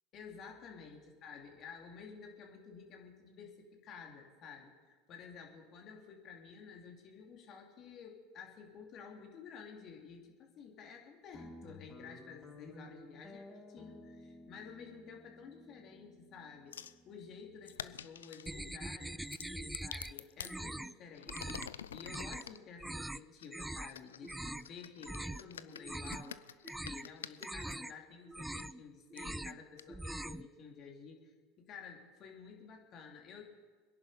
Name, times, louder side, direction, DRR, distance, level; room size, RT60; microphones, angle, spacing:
voice 1, 0.1-16.8 17.0-21.6 21.9-33.4, left 6 dB, 45° left, 2 dB, 2.8 m, -52 dB
Guitar, 11.3-18.0, left 2 dB, 15° left, 5.6 m, -55 dB
sound 1, 16.7-17.0 17.7-18.5 19.2-20.6 21.1-22.6 23.4-27.8 28.6-28.7 29.2-29.3 29.8-29.9, left 9 dB, 85° left, 0.4 m, -48 dB
sound 2, 18.5-20.1 20.4-20.9 21.3-21.7 22.0-22.4 22.8-23.2 23.5-23.9 24.2-24.7 25.0-25.4 25.7-26.3 26.6-27.1 27.4-27.9 28.3-28.8 29.1-29.6 29.9-30.5, right 1 dB, 5° right, 0.4 m, -42 dB
23.0 x 11.0 x 5.1 m, 1.4 s
hypercardioid pair, 85°, 0 cm